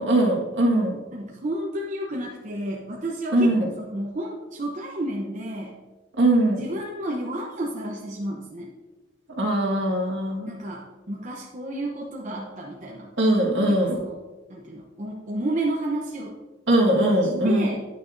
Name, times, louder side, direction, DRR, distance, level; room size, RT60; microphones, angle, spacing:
voice 1, 0.0-1.0 3.3-3.7 6.2-6.6 9.4-10.5 13.2-14.0 16.7-17.8, right 1 dB, 65° right, -2 dB, 1.7 m, -21 dB
voice 2, 1.1-3.5 3.9-5.8 6.5-8.7 10.5-13.1 13.7-14.2 14.5-16.4 17.0-17.8, right 1 dB, 40° right, -2 dB, 0.8 m, -31 dB
9.7 x 8.6 x 2.6 m, 1.2 s
head